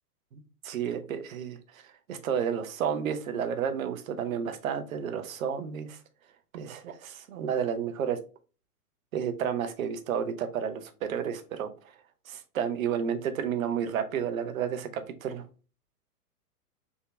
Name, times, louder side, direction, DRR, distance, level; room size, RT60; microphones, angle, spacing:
voice 1, 0.3-1.8 2.1-6.0 6.5-8.2 9.1-11.7 12.3-15.4, right 8 dB, 60° right, 0.7 m, -31 dB
3.5 x 2.7 x 3.1 m
figure-of-eight pair, 115°, 46 cm